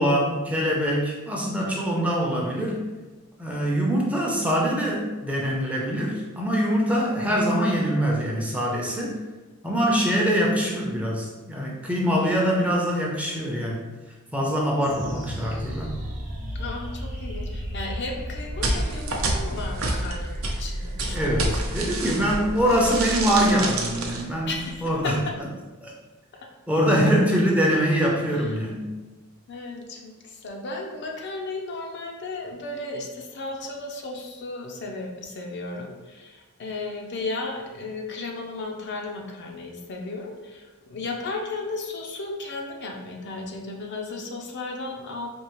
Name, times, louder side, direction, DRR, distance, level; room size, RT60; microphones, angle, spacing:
voice 1, 0.0-2.8 3.4-9.2 9.6-13.9 14.3-15.9 21.1-25.2 25.8-25.9 26.7-28.8, equal, 5° right, -3 dB, 0.6 m, -24 dB
sound 1, 14.8-25.5, equal, 40° right, 0.8 m, -34 dB
voice 2, 16.5-21.5 24.5-25.3 28.4-28.5 29.5-45.3, left 3 dB, 55° left, 1 dB, 0.5 m, -34 dB
sound 2, 18.6-22.4 22.7-24.2, right 2 dB, 70° right, 0.7 m, -28 dB
4.4 x 2.8 x 3.1 m, 1.2 s
head